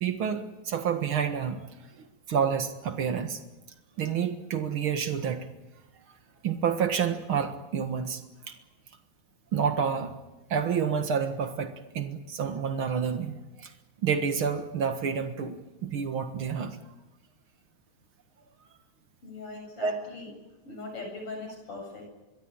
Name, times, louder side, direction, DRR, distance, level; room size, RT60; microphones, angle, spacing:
voice 1, 0.0-1.7 2.0-3.4 4.0-5.5 5.9-6.1 6.4-8.2 8.5-8.6 9.5-10.1 10.5-13.7 14.0-16.8 19.8-19.9, right 7 dB, 85° right, 6 dB, 1.1 m, -29 dB
voice 2, 19.2-20.3 20.6-22.1, left 3 dB, 30° left, 3 dB, 9.0 m, -40 dB
26.5 x 23.0 x 8.9 m, 1.1 s
omnidirectional pair, 4.9 m